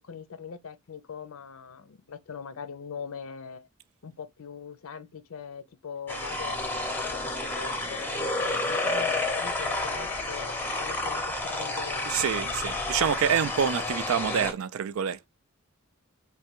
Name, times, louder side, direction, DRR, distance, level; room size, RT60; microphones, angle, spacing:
voice 1, 0.0-3.7 4.0-12.1 12.4-12.7, left 6 dB, 80° left, 0.5 m, -41 dB
sound 1, 6.1-14.5, left 2 dB, 10° left, 0.6 m, -30 dB
voice 2, 12.1-15.3, right 8 dB, 80° right, 0.4 m, -27 dB
3.2 x 2.2 x 2.9 m
head